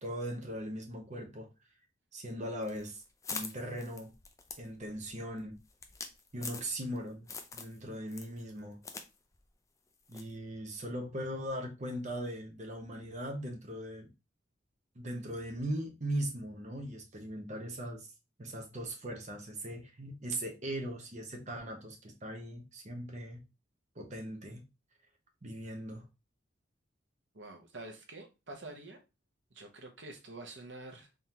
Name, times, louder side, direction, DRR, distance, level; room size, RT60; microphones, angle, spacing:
voice 1, 0.0-1.5 2.1-3.0 3.3-4.1 4.6-5.6 6.3-8.8 10.1-14.1 15.0-18.1 18.4-23.4 24.0-24.6 25.4-26.0, right 1 dB, 40° right, 0.9 m, -39 dB
sound 1, 2.6-7.0 7.3-7.8 8.1-9.1 9.3-9.4 10.1-10.3, left 4 dB, 15° left, 0.4 m, -43 dB
voice 2, 27.3-29.0 29.5-31.1, right 2 dB, 70° right, 1.0 m, -47 dB
3.6 x 3.4 x 2.8 m
head